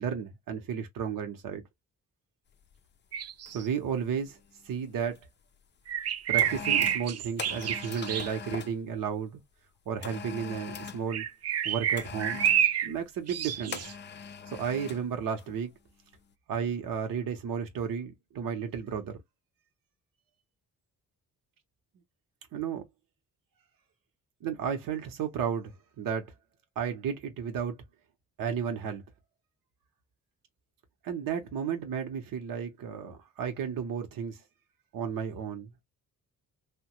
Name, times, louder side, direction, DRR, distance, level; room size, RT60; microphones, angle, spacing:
voice 1, 0.0-1.6 3.5-4.4 4.6-5.2 6.3-9.4 9.9-11.3 11.6-12.4 12.8-13.9 14.5-15.7 16.5-19.2 22.5-22.8 24.4-26.3 26.8-27.8 28.4-29.0 31.0-34.4 34.9-35.8, right 7 dB, 70° right, 0.9 m, -33 dB
sound 1, 2.6-2.8 3.5-3.7 4.0-5.2 5.9-8.8 10.0-11.1 12.0-12.7 13.7-15.1 15.4-15.6, left 6 dB, 30° left, 0.5 m, -41 dB
sound 2, 3.1-3.7 5.9-8.3 11.1-12.9 13.3-13.9, right 10 dB, 45° right, 0.4 m, -28 dB
3.0 x 2.2 x 2.9 m
cardioid pair, 70°, 35 cm